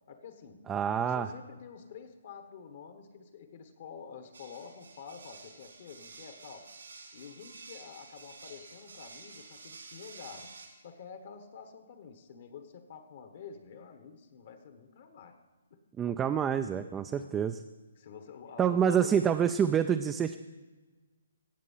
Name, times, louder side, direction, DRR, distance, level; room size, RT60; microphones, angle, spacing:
voice 1, 0.1-0.7 1.0-6.7 7.1-10.6 10.8-15.4 15.7-15.8 17.1-17.5 18.0-19.3, left 6 dB, 55° left, 7 dB, 1.4 m, -48 dB
voice 2, 0.7-1.3 16.0-17.6 18.6-20.4, right 8 dB, 15° right, 7 dB, 0.4 m, -27 dB
sound 1, 4.3-10.7, right 4 dB, 80° right, 3.4 m, -50 dB
17.5 x 7.4 x 5.6 m, 1.3 s
hypercardioid pair, 145°, 0 cm